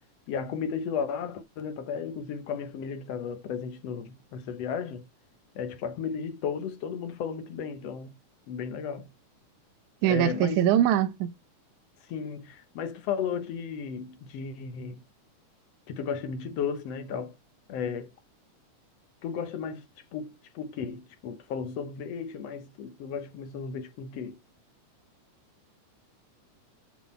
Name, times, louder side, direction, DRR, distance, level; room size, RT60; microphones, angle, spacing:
voice 1, 0.3-5.1 5.6-8.1 8.5-9.1 10.1-10.6 12.1-15.0 15.9-17.4 17.7-18.1 19.2-19.8 20.1-24.4, left 6 dB, 65° left, 1.8 m, -34 dB
voice 2, 10.0-11.3, right 10 dB, 75° right, 2.1 m, -22 dB
7.3 x 4.2 x 4.3 m
omnidirectional pair, 3.6 m